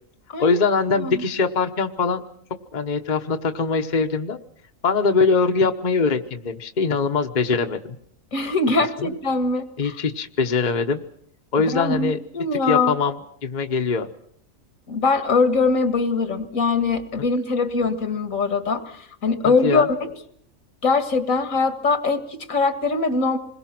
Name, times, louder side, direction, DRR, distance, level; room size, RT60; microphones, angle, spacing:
voice 1, 0.4-2.2 2.7-4.4 4.8-8.0 9.0-9.1 9.8-11.0 11.5-12.2 12.7-14.1 19.4-19.9, left 4 dB, 35° left, 5 dB, 1.1 m, -22 dB
voice 2, 8.3-9.6 11.6-12.9 14.9-20.1 20.8-23.4, left 4 dB, 75° left, 8 dB, 2.2 m, -22 dB
27.5 x 21.5 x 6.0 m, 0.67 s
omnidirectional pair, 1.4 m